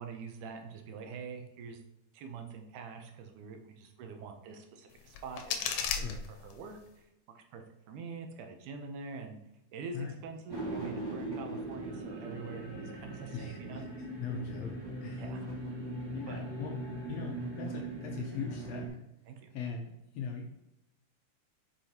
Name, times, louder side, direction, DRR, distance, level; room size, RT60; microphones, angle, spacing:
voice 1, 0.0-1.8 2.1-9.4 9.7-13.8 15.2-15.4 16.3-16.5 19.3-19.5, right 5 dB, 80° right, 5 dB, 2.3 m, -45 dB
sound 1, 4.9-6.9, left 7 dB, 90° left, 2.2 m, -36 dB
sound 2, 10.5-18.9, right 1 dB, 10° right, 1.7 m, -40 dB
voice 2, 13.3-13.8 14.2-15.3 16.1-16.8 17.1-18.9 19.5-20.5, left 5 dB, 70° left, 2 dB, 1.7 m, -40 dB
7.9 x 5.1 x 2.9 m, 0.87 s
omnidirectional pair, 3.5 m